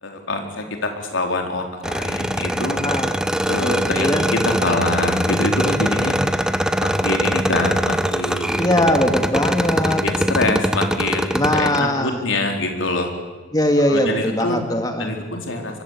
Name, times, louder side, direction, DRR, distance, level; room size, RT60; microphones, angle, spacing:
voice 1, 0.0-2.8 3.5-6.2 6.8-8.7 9.8-11.3 11.5-13.1 13.9-14.6 15.0-15.8, left 2 dB, 85° left, 3 dB, 4.4 m, -25 dB
sound 1, 1.8-11.8, equal, 5° right, 1.0 m, -22 dB
voice 2, 3.5-4.2 8.6-10.0 11.3-12.2 13.5-15.1, left 1 dB, 20° left, 5 dB, 2.1 m, -20 dB
26.5 x 23.5 x 8.5 m, 1.3 s
head